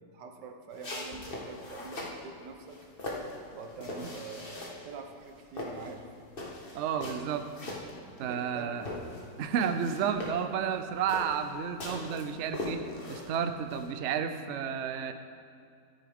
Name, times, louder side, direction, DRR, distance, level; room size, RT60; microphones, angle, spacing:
voice 1, 0.0-2.9 3.5-6.1 8.2-8.8, right 4 dB, 85° right, 5 dB, 1.5 m, -45 dB
sound 1, 0.7-2.2 2.7-4.9 5.2-8.5 8.8-13.9, left 2 dB, 35° left, 1.5 m, -40 dB
voice 2, 6.7-7.5 8.2-8.8 9.4-12.8 13.1-15.1, right 7 dB, 60° right, 8 dB, 0.7 m, -31 dB
13.5 x 9.7 x 3.6 m, 2.4 s
omnidirectional pair, 1.8 m